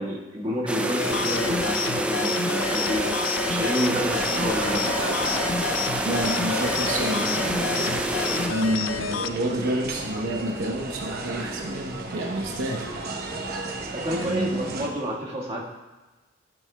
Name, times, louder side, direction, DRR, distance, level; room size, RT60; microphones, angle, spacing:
voice 1, 0.0-3.1 3.4-4.9 13.9-15.6, equal, 30° right, -4 dB, 1.5 m, -29 dB
sound 1, 0.7-8.7, right 1 dB, 5° right, 0.4 m, -28 dB
sound 2, 1.0-9.3, left 6 dB, 70° left, 0.4 m, -30 dB
sound 3, 3.9-14.9, right 2 dB, 50° right, 0.9 m, -34 dB
voice 2, 6.0-8.0 8.5-12.9 14.1-14.9, right 1 dB, 85° right, 1 dB, 0.9 m, -29 dB
12.5 x 7.8 x 2.2 m, 1.2 s
head